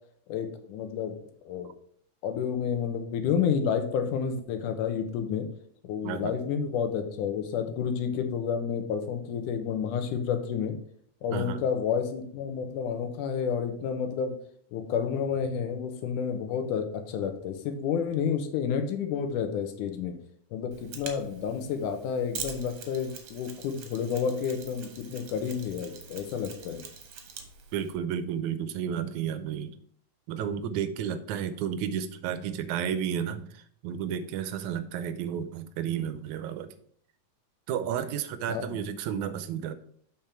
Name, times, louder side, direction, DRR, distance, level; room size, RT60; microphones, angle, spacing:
voice 1, 0.3-1.2 1.4-1.7 2.2-5.5 5.8-10.7 11.2-14.3 14.7-20.2 20.5-26.8 38.5-38.8, left 7 dB, 90° left, 7 dB, 2.4 m, -30 dB
voice 2, 6.0-6.4 11.3-11.6 27.7-29.8 30.3-36.8 37.7-39.7, right 8 dB, 80° right, 12 dB, 2.0 m, -32 dB
Mechanisms, 20.7-27.9, right 6 dB, 60° right, 1.8 m, -44 dB
7.3 x 5.3 x 4.4 m, 0.62 s
omnidirectional pair, 3.5 m